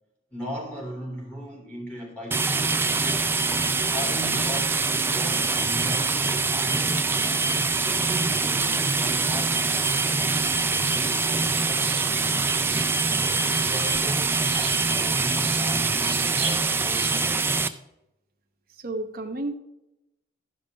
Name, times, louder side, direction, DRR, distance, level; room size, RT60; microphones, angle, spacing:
voice 1, 0.3-2.9 3.9-7.1 7.8-9.8 10.7-12.9 13.5-17.5, equal, 5° left, -4 dB, 3.1 m, -38 dB
sound 1, 2.3-17.7, right 4 dB, 10° right, 0.3 m, -24 dB
sound 2, 6.4-17.1, right 8 dB, 80° right, 1.4 m, -41 dB
voice 2, 18.8-19.5, right 2 dB, 50° right, 3 dB, 1.0 m, -31 dB
12.0 x 5.4 x 5.2 m, 0.88 s
head